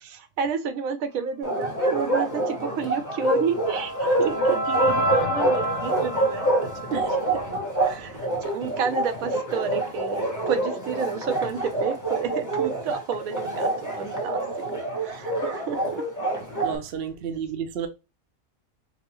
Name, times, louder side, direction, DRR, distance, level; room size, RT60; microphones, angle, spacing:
voice 1, 0.0-7.0 7.4-14.4 14.7-16.0, right 6 dB, 85° right, 1.1 m, -31 dB
Bark, 1.4-16.8, right 2 dB, 15° left, 1.0 m, -27 dB
sound 1, 2.9-8.1, equal, 50° left, 0.5 m, -29 dB
voice 2, 6.9-7.4 8.0-8.1 16.6-17.9, right 7 dB, 55° right, 0.7 m, -32 dB
5.2 x 2.0 x 3.0 m
omnidirectional pair, 1.4 m